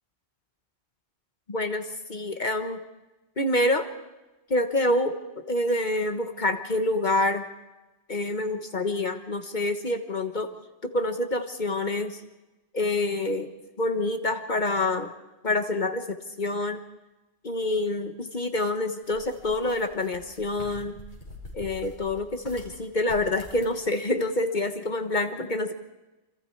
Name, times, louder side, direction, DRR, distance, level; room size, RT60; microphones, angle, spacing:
voice 1, 1.5-2.8 3.4-3.9 4.5-7.5 8.1-10.5 10.8-12.2 12.7-15.1 15.4-16.8 17.4-21.0 21.5-25.7, left 2 dB, 45° left, 7 dB, 1.3 m, -27 dB
sound 1, 19.0-22.7 23.0-23.8, left 2 dB, 80° left, 5.3 m, -45 dB
27.0 x 26.0 x 4.6 m, 1.1 s
omnidirectional pair, 1.1 m